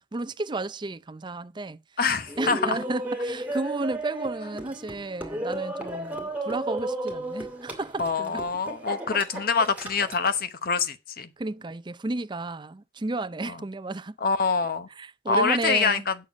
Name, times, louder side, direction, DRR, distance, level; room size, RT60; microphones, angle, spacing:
voice 1, 0.0-1.8 2.4-8.4 11.4-14.2 15.0-16.1, right 2 dB, 25° right, 0.5 m, -32 dB
voice 2, 2.0-2.8 8.0-11.3 13.5-13.6 14.2-14.9 15.3-16.2, left 5 dB, 55° left, 1.0 m, -25 dB
Laughter, 2.3-10.4, right 1 dB, 10° right, 2.3 m, -34 dB
8.8 x 6.6 x 5.1 m
head